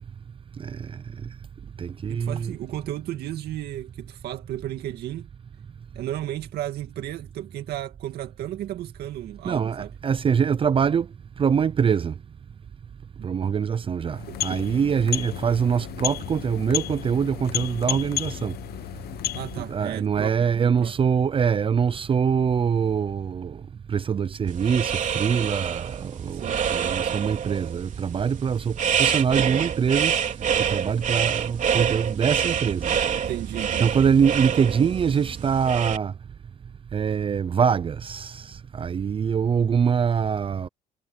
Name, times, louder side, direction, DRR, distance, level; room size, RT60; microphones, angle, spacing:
voice 1, 0.6-0.9 1.8-2.4 9.5-9.8 10.0-11.1 11.4-12.1 13.2-18.5 19.7-23.6 23.9-26.4 26.7-30.2 30.7-32.9 33.8-36.1 36.9-40.7, right 7 dB, 30° right, 0.6 m, -24 dB
voice 2, 2.1-5.3 5.9-10.0 14.3-14.6 19.3-21.0 26.3-26.6 33.2-34.0, right 13 dB, 70° right, 2.1 m, -34 dB
sound 1, 14.0-19.8, left 13 dB, 65° left, 1.0 m, -32 dB
sound 2, 24.5-36.0, right 8 dB, 45° right, 3.6 m, -27 dB
cardioid pair, 110°, 17 cm